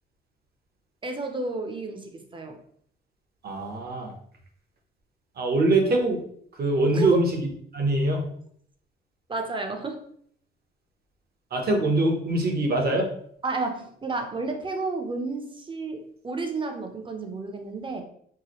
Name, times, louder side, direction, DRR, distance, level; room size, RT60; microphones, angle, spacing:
voice 1, 1.0-2.6 6.9-7.1 9.3-10.0 13.4-18.0, right 3 dB, 25° right, 5 dB, 0.7 m, -32 dB
voice 2, 3.4-4.1 5.4-6.2 6.5-8.2 11.5-13.1, right 2 dB, 50° right, 2 dB, 1.0 m, -23 dB
4.7 x 2.1 x 3.0 m, 0.64 s
cardioid pair, 90°, 20 cm